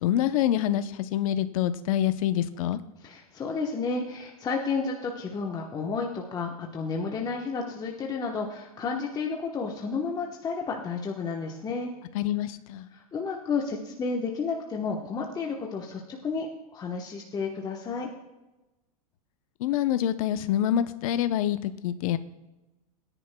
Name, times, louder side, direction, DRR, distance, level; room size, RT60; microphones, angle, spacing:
voice 1, 0.0-2.8 12.1-12.9 19.6-22.2, left 11 dB, 65° left, 11 dB, 0.7 m, -26 dB
voice 2, 3.0-11.9 12.9-16.5 16.7-18.1, left 4 dB, 20° left, 0 dB, 1.1 m, -31 dB
21.5 x 10.0 x 2.2 m, 1.0 s
supercardioid pair, 130°, 19 cm